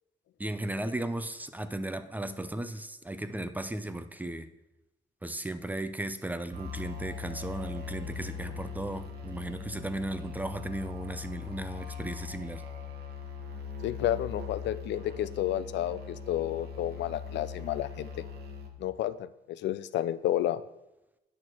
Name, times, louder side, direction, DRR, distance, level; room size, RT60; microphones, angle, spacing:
voice 1, 0.4-4.5 5.2-12.6, right 1 dB, 10° right, 10 dB, 0.5 m, -36 dB
sound 1, 6.5-18.7, left 6 dB, 65° right, 1.2 m, -40 dB
voice 2, 13.8-18.1 18.8-20.6, left 12 dB, 85° left, 15 dB, 0.5 m, -31 dB
9.0 x 6.3 x 4.4 m, 0.92 s
cardioid pair, 140°, 18 cm